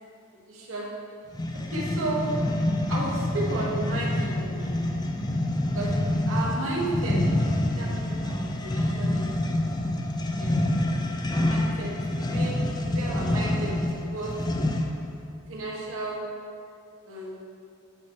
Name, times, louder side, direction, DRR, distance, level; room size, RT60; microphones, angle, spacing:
voice 1, 0.5-1.1 1.5-2.6 2.9-4.8 5.7-7.3 7.8-9.5 10.3-10.6 11.3-14.5 15.5-16.4 17.0-17.4, right 2 dB, 80° right, -3 dB, 1.4 m, -33 dB
sound 1, 1.3-15.0, left 1 dB, 20° left, 0.4 m, -27 dB
8.6 x 3.1 x 6.0 m, 2.4 s
head